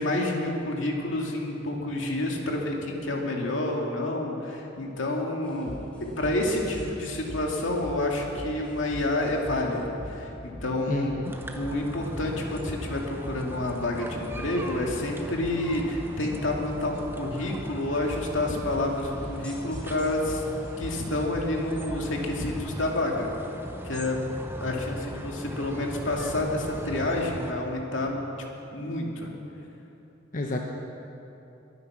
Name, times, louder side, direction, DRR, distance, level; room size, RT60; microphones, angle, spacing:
voice 1, 0.0-5.7 6.0-11.1 11.5-20.4 20.8-23.3 23.8-24.2 24.6-28.2 28.7-29.3, left 1 dB, 80° left, 0 dB, 2.3 m, -29 dB
sound 1, 5.4-22.7, equal, 5° left, 3.6 m, -42 dB
voice 2, 10.9-11.3 30.3-30.6, left 2 dB, 45° left, 1 dB, 0.9 m, -30 dB
sound 2, 11.2-27.5, equal, 10° right, 1.0 m, -39 dB
22.5 x 9.5 x 6.0 m, 3.0 s
head